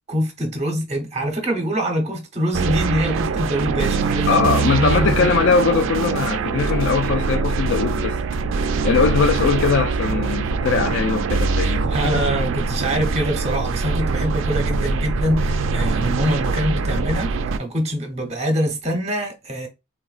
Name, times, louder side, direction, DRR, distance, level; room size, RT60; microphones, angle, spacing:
voice 1, 0.1-4.4 4.8-5.3 11.6-17.3 17.6-19.7, equal, 35° right, 0.9 m, -24 dB
sound 1, 2.5-17.6, right 4 dB, 85° right, 0.3 m, -23 dB
voice 2, 4.3-8.2 8.8-12.1, left 5 dB, 70° left, 0.3 m, -20 dB
3.7 x 2.3 x 2.3 m
head